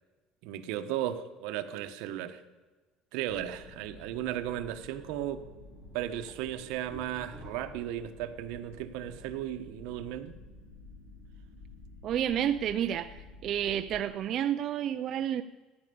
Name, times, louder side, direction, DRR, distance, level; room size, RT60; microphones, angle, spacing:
voice 1, 0.4-2.4 3.1-5.4 5.9-10.3, right 12 dB, 70° right, 8 dB, 1.1 m, -35 dB
sound 1, 3.3-14.0, left 3 dB, 80° left, 2.8 m, -51 dB
sound 2, 4.8-5.0 5.5-9.3 9.6-10.1, right 1 dB, 15° left, 4.9 m, -52 dB
voice 2, 12.0-15.4, right 10 dB, 35° right, 8 dB, 0.4 m, -30 dB
14.5 x 9.8 x 6.9 m, 1.3 s
cardioid pair, 175°, 0 cm